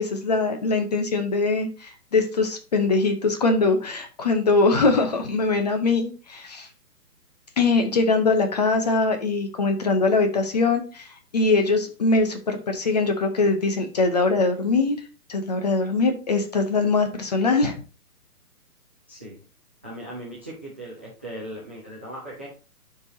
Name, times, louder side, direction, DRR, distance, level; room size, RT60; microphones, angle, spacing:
voice 1, 0.0-6.7 7.6-11.1 11.3-15.0 15.3-17.8, left 3 dB, 25° left, 6 dB, 0.8 m, -22 dB
voice 2, 19.1-19.4 19.8-22.5, right 1 dB, 10° right, -7 dB, 0.5 m, -38 dB
11.0 x 4.8 x 2.7 m, 0.36 s
hypercardioid pair, 155°, 47 cm